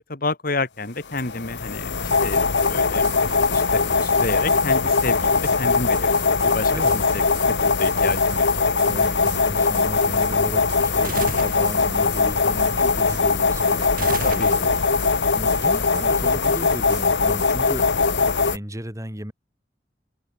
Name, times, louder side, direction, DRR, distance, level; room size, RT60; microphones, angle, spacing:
voice 1, 0.0-1.9 2.2-2.4 2.7-3.1 3.5-8.5 14.2-14.5, left 3 dB, 55° left, 2.2 m, -30 dB
sound 1, 1.1-18.6, left 4 dB, 80° left, 1.1 m, -21 dB
sound 2, 1.7-17.6, right 7 dB, 80° right, 2.8 m, -44 dB
voice 2, 6.4-7.0 8.8-15.1 15.3-19.3, equal, 20° right, 5.5 m, -35 dB
sound 3, 11.0-11.7 14.0-14.9, right 5 dB, 55° right, 0.9 m, -32 dB
head